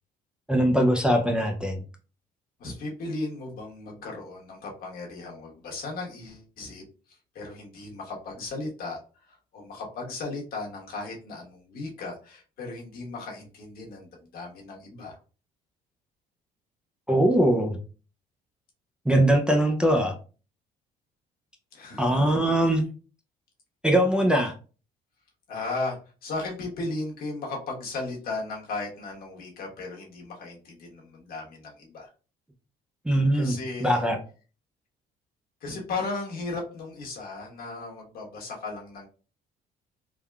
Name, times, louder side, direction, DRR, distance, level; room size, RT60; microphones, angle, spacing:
voice 1, 0.5-1.8 17.1-17.8 19.1-20.1 22.0-22.8 23.8-24.5 33.1-33.6 33.8-34.2, right 1 dB, 5° right, 1 dB, 0.4 m, -21 dB
voice 2, 2.6-6.8 7.1-9.0 9.3-15.2 21.7-22.1 25.5-32.1 33.3-34.0 35.6-39.1, left 3 dB, 60° left, -2 dB, 1.1 m, -36 dB
3.5 x 2.2 x 2.2 m, 0.36 s
cardioid pair, 110°, 17 cm